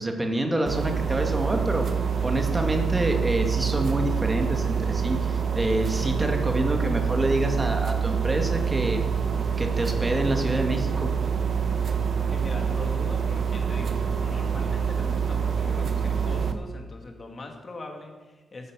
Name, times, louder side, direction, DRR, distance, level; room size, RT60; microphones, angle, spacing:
voice 1, 0.0-1.9 2.2-9.0 9.6-11.1, right 1 dB, 15° right, 4 dB, 1.9 m, -27 dB
sound 1, 0.7-16.5, right 6 dB, 50° right, 1.2 m, -26 dB
voice 2, 12.3-18.7, left 2 dB, 30° left, 2 dB, 2.6 m, -41 dB
14.5 x 9.5 x 6.9 m, 1.2 s
wide cardioid pair, 140°, 0 cm